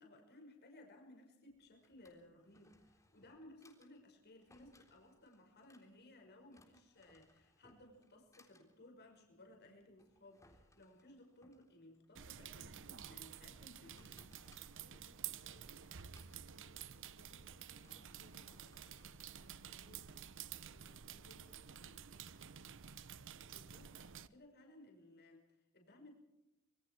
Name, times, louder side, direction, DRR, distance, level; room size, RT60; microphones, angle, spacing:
voice 1, 0.0-14.3 23.5-26.1, left 1 dB, 50° left, 2 dB, 5.7 m, -60 dB
Drawer open or close, 1.5-20.0, left 1 dB, 15° left, 3.7 m, -71 dB
sound 1, 12.2-24.3, right 9 dB, 60° right, 1.0 m, -51 dB
voice 2, 14.8-23.1, left 1 dB, 75° left, 2 dB, 5.2 m, -70 dB
25.5 x 24.0 x 4.6 m, 0.94 s
head